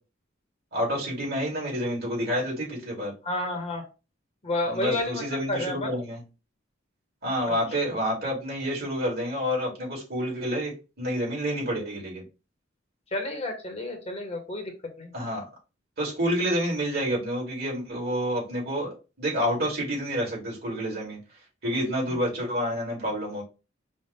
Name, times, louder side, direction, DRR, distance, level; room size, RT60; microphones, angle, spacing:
voice 1, 0.7-3.1 4.7-6.2 7.2-12.2 15.1-15.4 16.0-21.2 21.6-23.4, equal, 55° right, -3 dB, 2.6 m, -29 dB
voice 2, 3.2-3.8 4.4-5.2 5.5-5.9 7.5-7.6 13.1-14.7 15.0-15.1, left 2 dB, 35° left, 4 dB, 1.1 m, -30 dB
5.4 x 2.4 x 3.5 m, 0.31 s
head